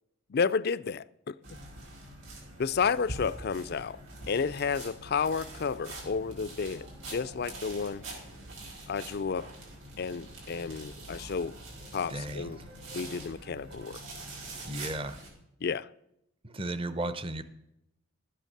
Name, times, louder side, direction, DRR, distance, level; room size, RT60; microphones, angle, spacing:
voice 1, 0.3-1.3 2.6-4.0 4.3-8.0 8.9-9.5 10.0-11.6 11.9-12.6 12.9-14.0 15.6-15.9, left 5 dB, 50° left, 0.4 m, -31 dB
sound 1, 1.4-15.3, right 2 dB, 65° right, 5.5 m, -44 dB
voice 2, 12.1-12.6 14.6-15.2 16.4-17.4, right 1 dB, 25° right, 0.7 m, -35 dB
13.0 x 9.1 x 6.7 m
head